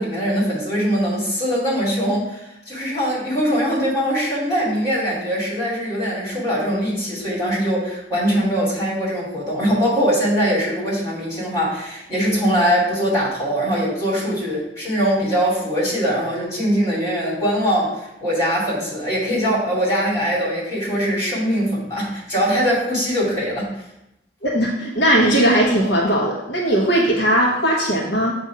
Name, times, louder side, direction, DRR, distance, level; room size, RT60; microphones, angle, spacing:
voice 1, 0.0-23.8, equal, 20° left, -6 dB, 2.5 m, -22 dB
voice 2, 24.4-28.4, right 1 dB, 65° left, -3 dB, 1.0 m, -18 dB
7.3 x 2.6 x 5.7 m, 0.85 s
head